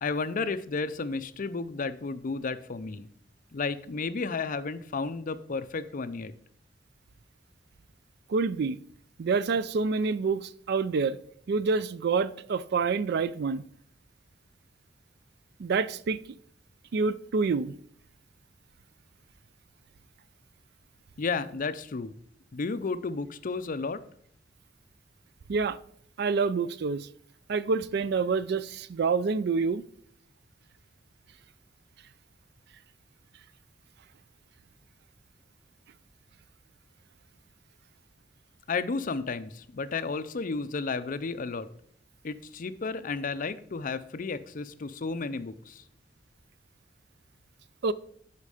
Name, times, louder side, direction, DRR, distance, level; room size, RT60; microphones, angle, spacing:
voice 1, 0.0-3.1 3.5-6.3 21.2-22.1 22.5-24.0 38.7-41.7 42.2-45.8, left 4 dB, 45° left, 0.5 m, -32 dB
voice 2, 8.3-8.8 9.2-11.2 11.5-13.6 15.6-16.2 16.9-17.8 25.5-25.8 26.2-27.1 27.5-29.8 47.8-47.9, right 4 dB, 60° right, 0.4 m, -27 dB
10.5 x 4.6 x 4.9 m
head